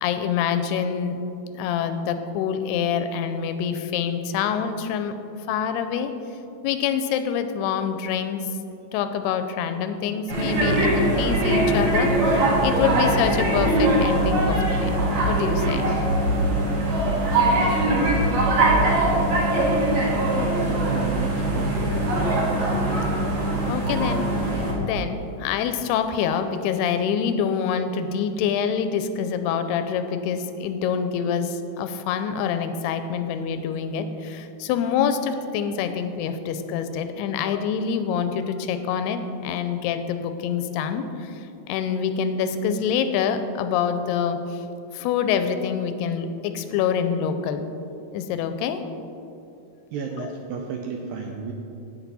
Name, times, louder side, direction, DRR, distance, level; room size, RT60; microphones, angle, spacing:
voice 1, 0.0-1.2 1.5-5.1 5.5-6.1 6.6-8.5 8.9-15.0 15.2-15.8 23.7-24.3 24.8-44.6 44.9-47.7 48.1-48.8 50.1-50.3, left 7 dB, 85° left, 9 dB, 2.6 m, -26 dB
sound 1, 10.3-24.7, right 1 dB, 60° right, 3.2 m, -21 dB
voice 2, 20.9-22.0 49.9-51.5, right 6 dB, 90° right, 2 dB, 2.0 m, -32 dB
10.5 x 8.6 x 4.1 m, 2.7 s
omnidirectional pair, 4.6 m